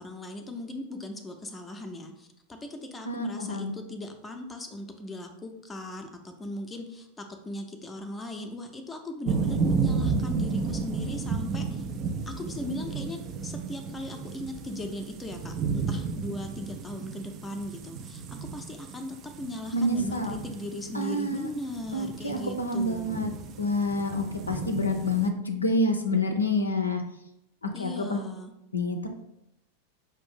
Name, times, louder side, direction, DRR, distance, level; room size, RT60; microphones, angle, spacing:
voice 1, 0.0-11.8 12.3-23.2 27.7-28.5, left 1 dB, 10° left, 3 dB, 0.6 m, -38 dB
voice 2, 3.1-3.7 19.7-20.4 20.9-21.5 21.9-23.3 23.6-27.0 27.6-28.2 28.7-29.1, left 1 dB, 80° left, 5 dB, 0.5 m, -28 dB
sound 1, 9.2-25.3, right 5 dB, 35° right, 0.4 m, -33 dB
5.3 x 2.5 x 3.7 m, 0.85 s
figure-of-eight pair, 90°, 0 cm